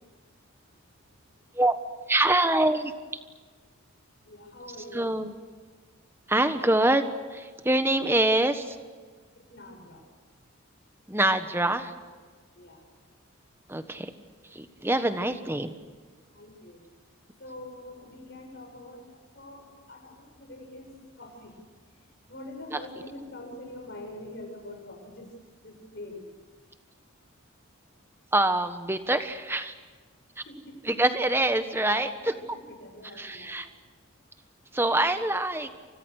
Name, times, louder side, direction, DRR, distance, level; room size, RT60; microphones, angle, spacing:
voice 1, 2.1-2.9 4.9-5.3 6.3-7.1 7.3-8.8 11.1-11.9 13.7-14.1 14.5-15.7 22.7-22.8 28.3-29.7 30.4-30.5 30.8-32.3 33.2-33.7 34.7-35.7, right 1 dB, 10° right, 9 dB, 1.4 m, -25 dB
voice 2, 4.3-5.1 9.5-10.0 12.6-12.8 15.2-15.3 16.3-16.8 17.4-20.9 21.2-21.5 22.3-25.3 25.6-26.2 30.4-30.8 32.2-33.6, left 1 dB, 50° left, 2 dB, 7.6 m, -44 dB
30.0 x 25.0 x 6.6 m, 1.5 s
head